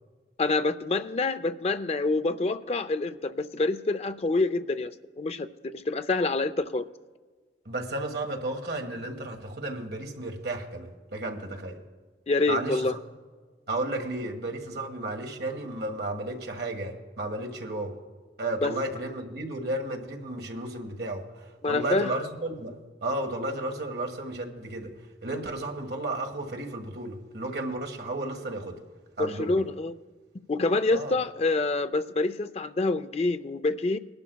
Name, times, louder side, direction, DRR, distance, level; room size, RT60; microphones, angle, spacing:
voice 1, 0.4-6.9 12.3-13.0 18.6-18.7 21.6-22.1 29.2-29.9 30.5-34.0, left 3 dB, 35° left, 10 dB, 0.4 m, -27 dB
voice 2, 7.6-11.8 12.5-13.0 13.7-17.9 18.4-22.8 23.0-24.9 25.2-28.8 29.2-29.7 30.9-31.1, right 2 dB, 65° right, 3 dB, 1.6 m, -33 dB
20.0 x 12.0 x 2.3 m, 1.4 s
head